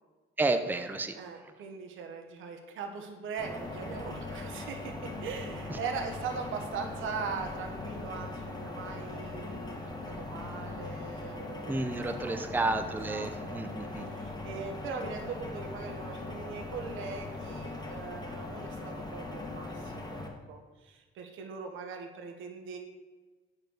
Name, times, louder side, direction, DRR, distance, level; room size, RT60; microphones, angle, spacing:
voice 1, 0.4-1.2 5.7-5.8 11.7-14.1, right 2 dB, 10° right, 6 dB, 0.6 m, -31 dB
voice 2, 1.1-11.7 12.2-12.4 12.9-13.6 14.0-22.8, right 5 dB, 85° right, 4 dB, 1.1 m, -40 dB
sound 1, 3.4-20.3, left 2 dB, 20° left, 1.7 m, -40 dB
8.6 x 4.5 x 6.5 m, 1.3 s
cardioid pair, 90°, 20 cm